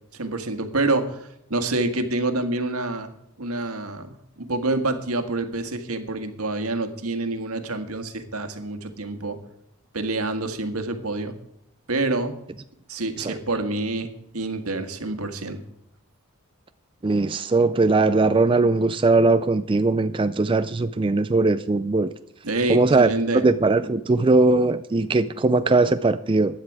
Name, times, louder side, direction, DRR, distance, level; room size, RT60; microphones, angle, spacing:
voice 1, 0.1-3.1 3.4-9.4 9.9-11.3 11.9-12.4 12.9-15.6 22.4-23.4, right 2 dB, 80° right, 7 dB, 1.7 m, -27 dB
voice 2, 17.0-22.1 22.7-23.1 23.4-26.6, right 3 dB, 25° right, 11 dB, 0.4 m, -20 dB
15.5 x 10.5 x 4.8 m, 0.79 s
head